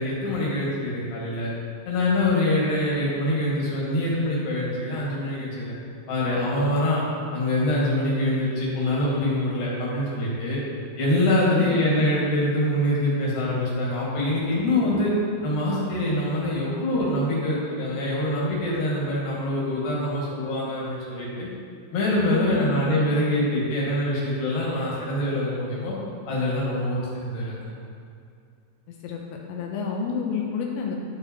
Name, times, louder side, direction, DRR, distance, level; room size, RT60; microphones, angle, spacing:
voice 1, 0.0-1.5 1.9-5.8 6.1-7.0 7.3-10.6 11.0-15.1 15.4-21.5 21.9-26.0 26.3-27.6, left 1 dB, 60° left, -5 dB, 3.3 m, -24 dB
voice 2, 11.4-11.8 22.3-22.7 28.9-29.2 29.5-31.0, left 6 dB, 85° left, 0 dB, 2.9 m, -30 dB
11.5 x 5.0 x 4.4 m, 2.3 s
omnidirectional pair, 5.0 m